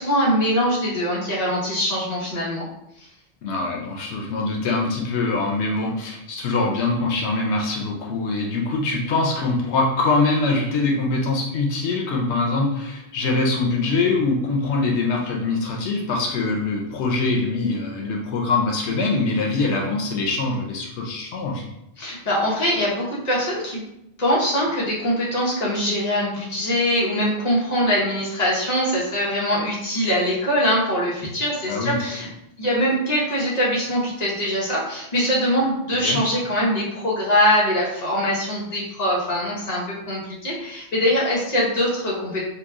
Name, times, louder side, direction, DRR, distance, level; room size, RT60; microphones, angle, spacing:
voice 1, 0.0-2.7 3.0-3.1 22.0-23.8 24.2-32.3 32.6-42.4, equal, 40° left, -5 dB, 0.9 m, -22 dB
voice 2, 3.4-21.7 31.7-31.9 36.0-36.2, left 3 dB, 85° left, 0 dB, 0.9 m, -23 dB
2.9 x 2.2 x 3.5 m, 0.83 s
omnidirectional pair, 1.1 m